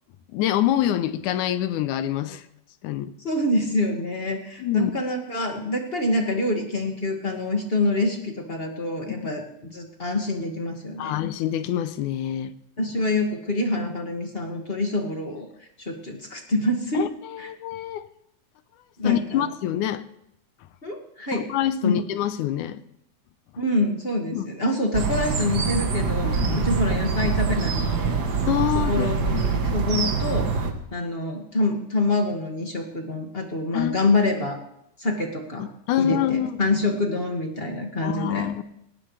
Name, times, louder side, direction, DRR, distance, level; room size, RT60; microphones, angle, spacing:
voice 1, 0.3-2.4 2.8-3.1 4.6-4.9 9.1-9.3 11.0-12.5 16.9-18.1 19.0-20.0 21.3-22.8 24.3-24.5 26.2-26.7 27.2-27.3 28.4-29.8 33.7-34.1 35.6-36.5 38.0-38.6, left 11 dB, 85° left, 12 dB, 2.2 m, -26 dB
voice 2, 3.2-9.4 9.7-11.2 12.8-15.5 15.8-17.0 17.4-17.5 19.0-19.4 20.8-21.4 21.8-22.0 23.6-28.2 28.7-30.5 30.9-34.6 35.0-35.7 36.0-38.5, left 2 dB, 20° left, 2 dB, 1.8 m, -26 dB
sound 1, 24.9-30.7, right 5 dB, 50° right, 1.3 m, -24 dB
19.0 x 17.5 x 3.3 m, 0.77 s
omnidirectional pair, 3.4 m